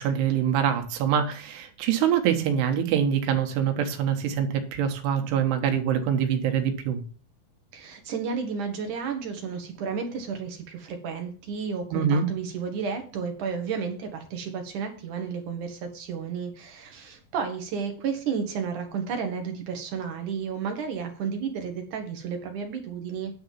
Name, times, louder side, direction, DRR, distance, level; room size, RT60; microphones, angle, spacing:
voice 1, 0.0-7.0 11.9-12.3, right 8 dB, 85° right, 5 dB, 3.3 m, -24 dB
voice 2, 7.7-23.4, right 6 dB, 65° right, 5 dB, 2.2 m, -32 dB
10.0 x 3.9 x 7.3 m, 0.40 s
omnidirectional pair, 4.7 m